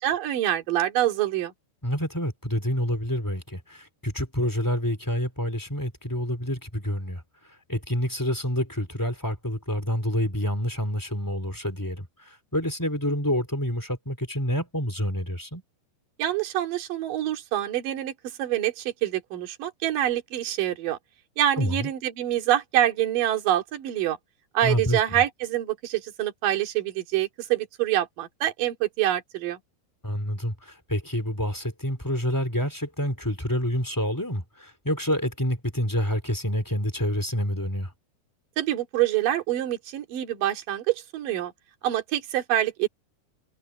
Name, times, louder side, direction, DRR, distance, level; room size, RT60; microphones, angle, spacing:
voice 1, 0.0-1.5 16.2-18.1 18.4-21.0 21.4-24.2 24.5-29.6 38.6-41.5 41.8-42.9, right 12 dB, 50° right, 3.6 m, -26 dB
voice 2, 1.8-7.2 7.7-15.6 21.6-21.9 24.6-25.0 30.0-37.9, equal, 5° left, 2.0 m, -28 dB
omnidirectional pair, 5.7 m